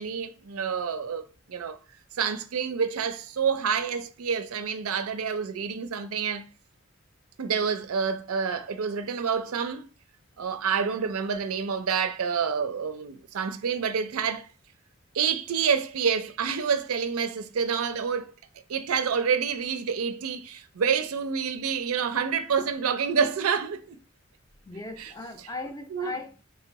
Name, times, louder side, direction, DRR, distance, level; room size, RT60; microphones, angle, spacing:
voice 1, 0.0-1.8 2.2-6.5 7.4-9.9 10.4-14.5 15.1-18.3 18.7-24.0 25.0-25.1 25.9-26.2, right 6 dB, 85° right, 0.5 m, -28 dB
voice 2, 24.7-26.4, left 3 dB, 15° left, 0.4 m, -38 dB
3.2 x 2.9 x 4.5 m
head